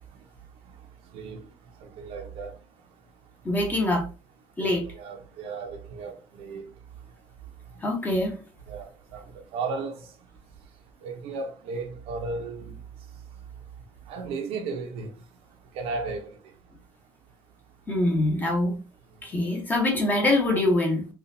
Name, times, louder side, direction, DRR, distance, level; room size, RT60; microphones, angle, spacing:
voice 1, 1.8-2.5 4.6-6.6 8.7-9.2 9.5-10.0 11.0-12.7 14.1-15.1 15.7-16.3, right 4 dB, 70° right, 0.9 m, -34 dB
voice 2, 3.4-4.1 4.6-4.9 7.8-8.4 17.9-18.8 19.2-21.1, left 1 dB, 15° left, 1.1 m, -24 dB
4.0 x 2.5 x 2.7 m
cardioid pair, 150°, 10 cm